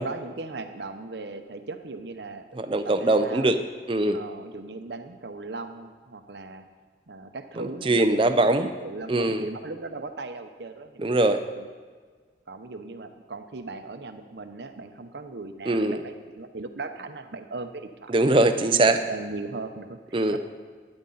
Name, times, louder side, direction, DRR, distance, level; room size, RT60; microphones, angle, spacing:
voice 1, 0.0-2.5 3.0-3.5 4.1-6.7 7.1-8.0 8.3-11.7 12.5-18.2 18.8-20.4, right 3 dB, 70° right, 8 dB, 0.8 m, -38 dB
voice 2, 2.6-3.6 3.9-4.2 7.9-8.7 9.1-9.5 11.0-11.4 15.7-16.0 18.1-19.0 20.1-20.4, right 2 dB, 30° right, 8 dB, 0.6 m, -21 dB
12.5 x 9.8 x 4.0 m, 1.5 s
head